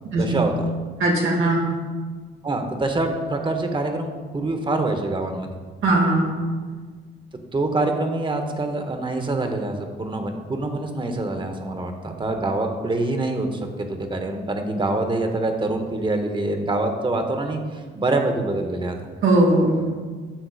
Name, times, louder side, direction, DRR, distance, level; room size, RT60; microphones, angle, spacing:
voice 1, 0.2-0.5 2.4-5.6 7.5-19.0, right 2 dB, 25° right, 5 dB, 1.0 m, -25 dB
voice 2, 1.0-1.7 5.8-6.4 19.2-19.9, right 2 dB, 80° right, -2 dB, 2.1 m, -19 dB
10.0 x 6.6 x 2.4 m, 1.5 s
cardioid pair, 90°, 20 cm